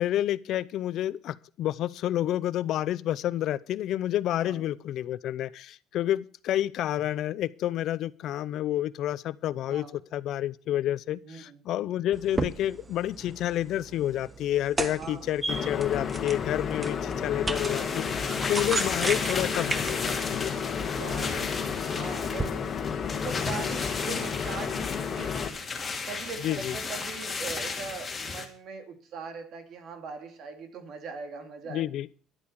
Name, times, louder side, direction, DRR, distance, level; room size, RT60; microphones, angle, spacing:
voice 1, 0.0-9.9 10.1-20.5 26.4-26.8 31.7-32.1, left 12 dB, 60° left, 0.6 m, -29 dB
voice 2, 9.7-10.0 11.2-11.6 15.0-15.3 17.7-18.0 20.9-22.7 23.1-25.5 26.1-31.8, right 5 dB, 55° right, 2.5 m, -41 dB
sound 1, 12.1-22.5, right 3 dB, 15° right, 0.9 m, -36 dB
sound 2, 15.5-25.5, left 7 dB, 35° left, 2.0 m, -32 dB
sound 3, 17.5-28.4, left 4 dB, 20° left, 2.8 m, -35 dB
11.5 x 8.7 x 7.2 m
cardioid pair, 120°, 0 cm